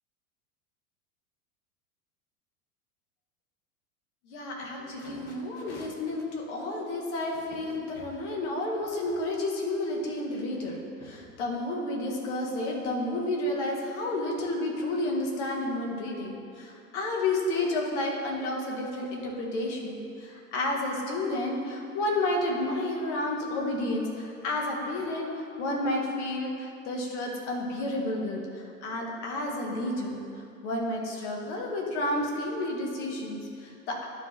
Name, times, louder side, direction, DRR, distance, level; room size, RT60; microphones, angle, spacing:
voice 1, 4.3-30.2 30.6-34.0, left 1 dB, 50° left, -1 dB, 1.4 m, -31 dB
11.5 x 4.6 x 2.8 m, 2.5 s
figure-of-eight pair, 85°, 45 cm